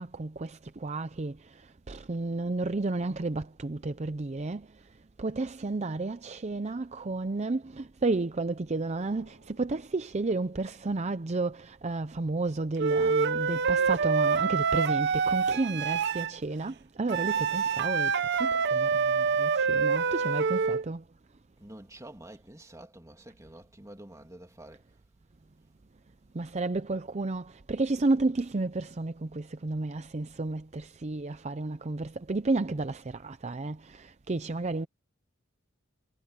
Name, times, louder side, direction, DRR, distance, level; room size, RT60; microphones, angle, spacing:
voice 1, 0.0-4.7 5.2-21.0 26.3-34.9, right 3 dB, 35° right, 0.6 m, -32 dB
sound 1, 8.9-11.4 13.7-14.4, right 2 dB, 85° right, 3.7 m, -54 dB
Wind instrument woodwind instrument, 12.8-16.3 17.1-20.8, right 5 dB, 55° right, 0.9 m, -26 dB
voice 2, 21.6-24.8, right 1 dB, 15° right, 2.9 m, -48 dB
head